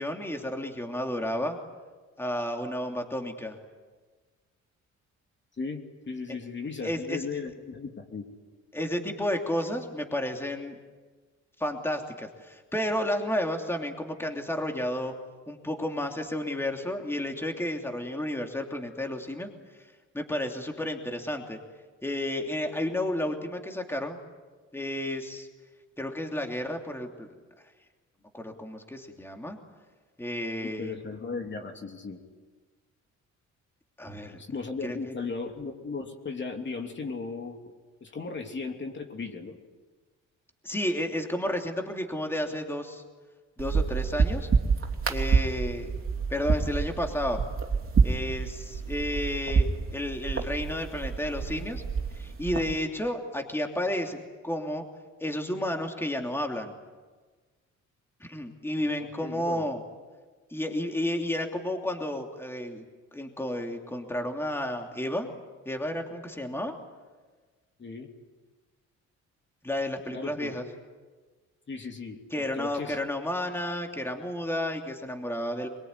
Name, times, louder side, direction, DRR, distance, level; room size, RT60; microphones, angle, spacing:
voice 1, 0.0-1.6 2.2-3.6 6.3-6.4 6.8-7.2 8.7-10.8 11.6-15.1 15.5-19.5 20.1-21.6 22.0-24.2 24.7-25.5 26.0-27.3 28.3-29.6 30.2-30.9 34.0-34.4 34.8-35.1 40.6-43.0 43.6-44.5 45.1-45.9 46.3-47.4 48.0-51.8 52.1-54.8 55.2-56.7 58.2-59.8 60.5-62.8 63.1-65.3 65.6-66.7 69.6-70.6 72.3-75.7, left 1 dB, 10° left, 3 dB, 3.0 m, -32 dB
voice 2, 6.1-8.2 30.6-32.2 34.4-37.6 38.0-39.6 58.8-59.7 67.8-68.1 70.1-70.6 71.7-72.2 72.5-73.0, left 4 dB, 40° left, 3 dB, 3.0 m, -36 dB
sound 1, 43.6-52.8, right 5 dB, 45° right, 3.1 m, -28 dB
22.5 x 22.5 x 9.7 m, 1.4 s
cardioid pair, 90°, 30 cm